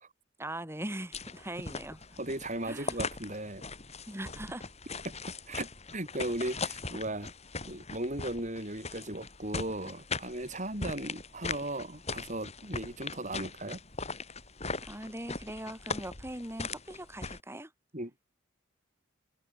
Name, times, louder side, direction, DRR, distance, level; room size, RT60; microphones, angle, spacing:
voice 1, 0.4-2.0 2.7-3.0 4.1-4.6 14.8-17.7, right 1 dB, 10° right, 3.4 m, -40 dB
sound 1, 1.1-17.4, left 4 dB, 35° left, 7.5 m, -40 dB
voice 2, 2.2-3.6 5.0-5.1 5.5-7.3 7.7-13.8 17.9-18.3, right 1 dB, 40° right, 7.2 m, -37 dB
head